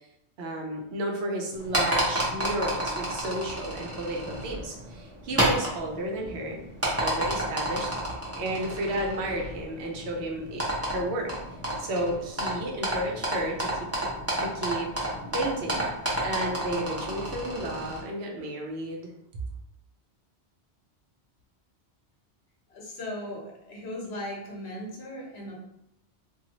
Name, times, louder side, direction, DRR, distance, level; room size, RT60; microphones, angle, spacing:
voice 1, 0.4-6.6 7.0-7.9 8.4-11.3 11.8-13.7 14.0-14.1 14.4-14.9 15.3-15.8 16.2-19.1, right 1 dB, 75° right, 0 dB, 0.9 m, -32 dB
sound 1, 1.5-18.0, right 1 dB, 15° right, 0.5 m, -31 dB
voice 2, 22.7-25.6, left 1 dB, 70° left, -2 dB, 1.0 m, -37 dB
2.7 x 2.4 x 2.8 m, 0.81 s
omnidirectional pair, 1.1 m